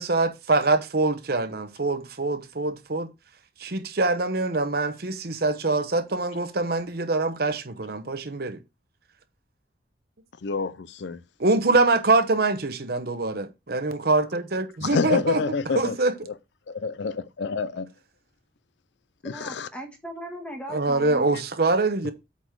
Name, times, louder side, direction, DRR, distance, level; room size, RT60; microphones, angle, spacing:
voice 1, 0.0-3.1 3.6-8.6 11.4-15.4 15.7-16.1 20.7-22.1, right 3 dB, 50° right, 0.9 m, -24 dB
voice 2, 10.4-11.2 14.8-16.0 16.7-17.9 19.2-19.7 22.0-22.1, left 5 dB, 60° left, 0.4 m, -28 dB
voice 3, 19.2-21.3, equal, 5° left, 1.5 m, -38 dB
8.3 x 4.0 x 4.6 m
head